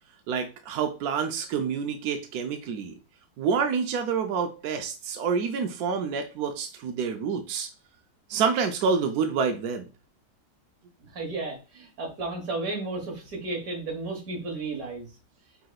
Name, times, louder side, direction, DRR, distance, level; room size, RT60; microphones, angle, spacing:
voice 1, 0.3-2.9 3.4-7.7 8.3-9.9, right 6 dB, 75° right, 5 dB, 0.8 m, -28 dB
voice 2, 11.1-15.1, right 3 dB, 50° right, 1 dB, 1.7 m, -33 dB
5.6 x 3.0 x 2.3 m, 0.31 s
omnidirectional pair, 2.2 m